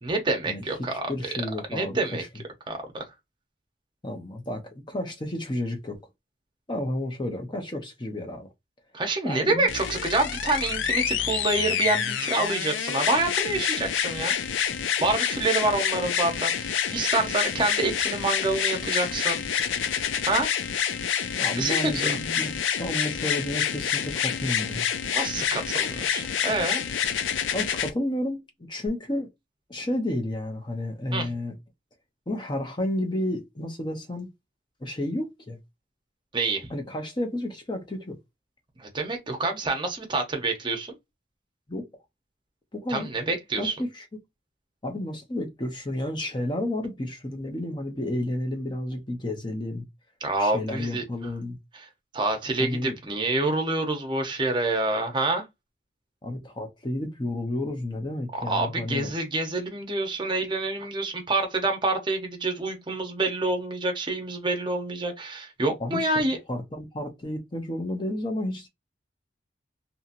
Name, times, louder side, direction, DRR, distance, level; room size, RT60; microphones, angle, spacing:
voice 1, 0.0-1.1 1.7-2.2 2.7-3.0 8.9-14.3 15.0-19.7 20.3-20.5 21.6-21.9 25.1-26.8 31.1-31.3 36.3-36.7 38.8-40.9 42.9-43.7 50.2-51.0 51.7-51.9 52.1-55.4 58.3-66.4, right 2 dB, 25° right, 0.7 m, -27 dB
voice 2, 0.9-2.3 4.0-6.0 6.7-8.5 9.2-9.7 21.4-24.9 27.5-28.4 28.7-29.3 29.7-31.5 32.3-34.3 34.8-35.6 36.7-38.2 41.7-41.9 42.7-43.1 43.6-44.1 44.8-49.9 50.4-51.6 52.6-53.0 56.2-59.1 65.8-66.1 66.5-68.7, left 1 dB, 25° left, 0.6 m, -31 dB
sound 1, 9.7-27.9 28.9-29.0, left 8 dB, 75° left, 0.4 m, -28 dB
2.8 x 2.8 x 2.5 m
head